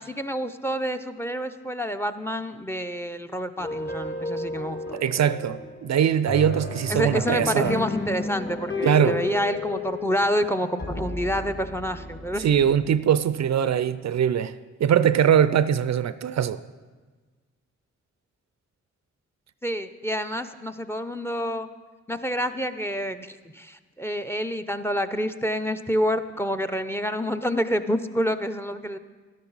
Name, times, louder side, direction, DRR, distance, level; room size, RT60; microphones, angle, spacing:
voice 1, 0.0-5.0 6.9-12.5 19.6-21.7 22.1-29.0, equal, 10° left, 0.6 m, -28 dB
sound 1, 3.6-12.9, left 2 dB, 35° left, 1.4 m, -33 dB
voice 2, 4.9-7.8 8.8-9.2 12.4-16.6, right 9 dB, 60° right, 0.5 m, -22 dB
12.0 x 11.5 x 4.1 m
cardioid pair, 50°, 30 cm